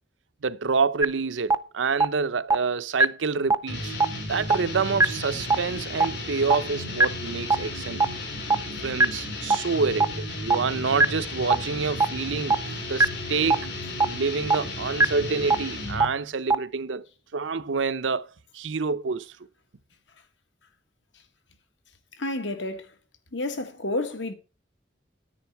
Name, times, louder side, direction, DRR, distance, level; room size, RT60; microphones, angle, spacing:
voice 1, 0.4-4.0 4.3-8.0 8.8-12.6 12.9-13.7 14.0-17.1 17.3-19.3, right 4 dB, 90° right, 0.7 m, -27 dB
sound 1, 1.0-1.1 1.5-1.6 2.0-2.1 2.5-2.6 3.0-3.1 3.5-3.6 4.0-4.1 4.5-4.6 5.0-5.1 5.5-5.6 6.0-6.1 6.5-6.6 7.0-7.1 7.5-7.6 8.0-8.1 8.5-8.6 9.0-9.1 9.5-9.6 10.0-10.1 10.5-10.6 11.0-11.1 11.5-11.6 12.0-12.1 12.5-12.6 13.0-13.1 13.5-13.6 14.0-14.1 14.5-14.6 15.0-15.1 15.5-15.6 16.0-16.1 16.5-16.6, right 3 dB, 15° right, 0.4 m, -16 dB
sound 2, 3.7-16.2, left 1 dB, 65° left, 4.1 m, -34 dB
voice 2, 22.2-22.9 23.3-24.3, left 2 dB, 85° left, 1.8 m, -30 dB
10.0 x 9.6 x 4.7 m
head